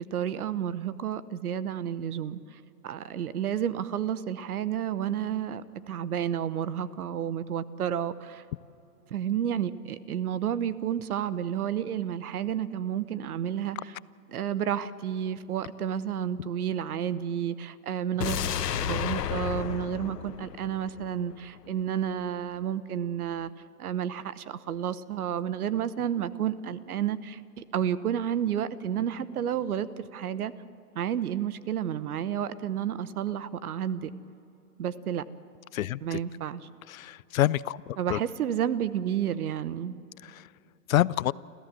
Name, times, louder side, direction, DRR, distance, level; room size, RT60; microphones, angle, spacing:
voice 1, 0.0-8.4 9.1-14.0 14.3-18.5 18.8-23.5 23.8-30.5 30.9-34.1 34.8-35.2 36.0-36.6 38.0-40.0, right 9 dB, 70° right, 16 dB, 1.0 m, -31 dB
sound 1, 18.2-21.3 21.7-21.8, left 9 dB, 80° left, 1.0 m, -32 dB
voice 2, 35.7-36.2 36.9-38.2 40.2-40.4 40.9-41.3, left 13 dB, 60° left, 21 dB, 0.5 m, -27 dB
27.0 x 14.5 x 7.6 m, 2.8 s
hypercardioid pair, 140°, 47 cm